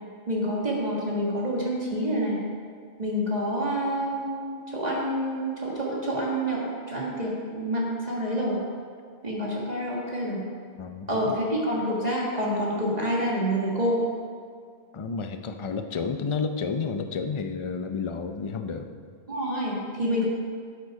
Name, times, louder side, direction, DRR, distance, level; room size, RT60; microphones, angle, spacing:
voice 1, 0.3-2.4 3.0-8.6 9.2-10.4 11.1-14.0 19.3-20.3, equal, 35° right, -4 dB, 1.7 m, -27 dB
voice 2, 10.8-11.4 14.9-18.9, left 5 dB, 35° left, 7 dB, 0.5 m, -31 dB
12.5 x 6.8 x 4.9 m, 2.1 s
omnidirectional pair, 1.2 m